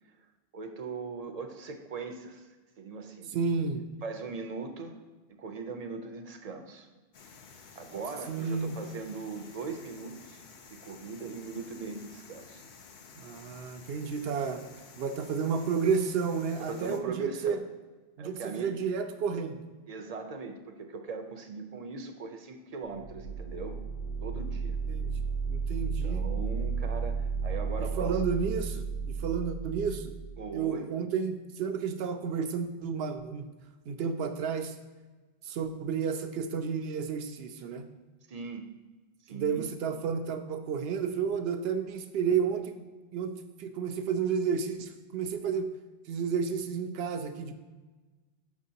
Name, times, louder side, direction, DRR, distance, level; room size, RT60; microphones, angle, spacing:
voice 1, 0.5-2.5 2.8-3.3 4.0-5.0 5.4-6.9 7.8-10.4 10.7-12.6 16.6-17.6 18.2-18.7 19.9-23.8 24.2-24.8 26.0-28.2 30.4-30.9 38.3-38.7 39.2-39.7, right 4 dB, 45° right, 4 dB, 0.6 m, -40 dB
voice 2, 3.3-3.8 8.3-8.8 13.2-14.6 15.0-17.6 18.2-19.6 24.9-25.1 25.5-26.3 27.8-30.2 30.5-33.5 33.9-34.7 35.4-37.9 39.3-42.8 43.1-45.7 46.1-47.5, right 6 dB, 75° right, 8 dB, 0.8 m, -31 dB
sound 1, 7.1-17.0, left 5 dB, 55° left, 0.6 m, -52 dB
sound 2, 22.9-30.6, right 5 dB, 85° left, 0.9 m, -33 dB
7.2 x 5.9 x 2.7 m, 1.3 s
omnidirectional pair, 1.1 m